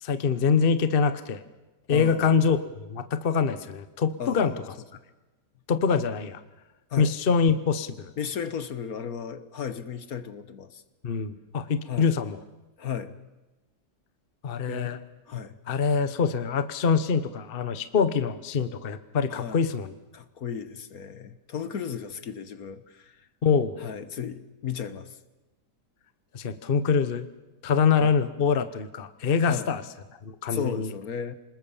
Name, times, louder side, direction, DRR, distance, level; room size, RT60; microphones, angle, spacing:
voice 1, 0.0-1.4 1.9-4.5 5.7-6.4 7.0-8.1 11.0-12.4 14.4-15.0 15.7-19.9 23.4-23.8 26.3-27.3 27.6-29.8 30.2-30.9, left 6 dB, 40° left, 11 dB, 1.1 m, -24 dB
voice 2, 1.9-2.4 4.2-4.6 6.9-7.1 8.2-10.8 11.8-12.1 12.8-13.2 14.7-15.0 15.3-15.5 19.3-19.6 20.1-23.3 23.8-25.2 28.0-28.1 29.4-29.7 30.5-31.3, left 7 dB, 60° left, 12 dB, 1.6 m, -35 dB
26.5 x 20.5 x 7.1 m, 1.1 s
omnidirectional pair, 1.8 m